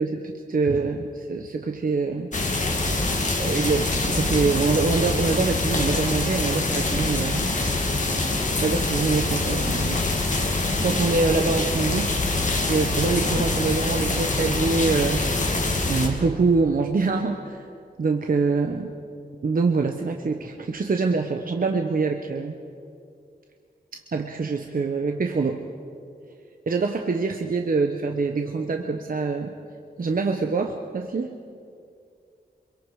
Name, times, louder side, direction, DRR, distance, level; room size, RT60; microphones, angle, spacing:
voice 1, 0.0-2.3 3.4-7.5 8.6-10.0 10.8-12.1 12.7-15.2 15.9-17.6 18.0-18.9 19.4-22.6 23.9-25.6 26.7-29.5 30.0-31.4, right 4 dB, 60° right, 4 dB, 1.1 m, -25 dB
sound 1, 2.3-16.1, left 2 dB, 50° left, 2.7 m, -24 dB
25.5 x 23.0 x 4.9 m, 2.3 s
wide cardioid pair, 120°, 17 cm